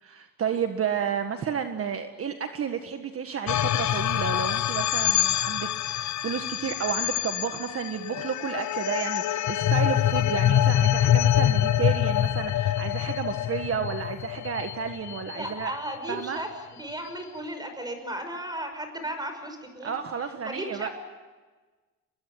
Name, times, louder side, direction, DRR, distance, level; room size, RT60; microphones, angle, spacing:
voice 1, 0.0-15.7 16.1-16.4 19.8-20.9, right 7 dB, 40° right, 6 dB, 1.6 m, -31 dB
sound 1, 3.5-15.9, left 11 dB, 50° left, 0.8 m, -25 dB
voice 2, 15.3-16.5 16.8-19.9 20.4-20.9, right 1 dB, 10° right, 6 dB, 5.9 m, -35 dB
24.0 x 22.0 x 9.6 m, 1.3 s
cardioid pair, 125°, 35 cm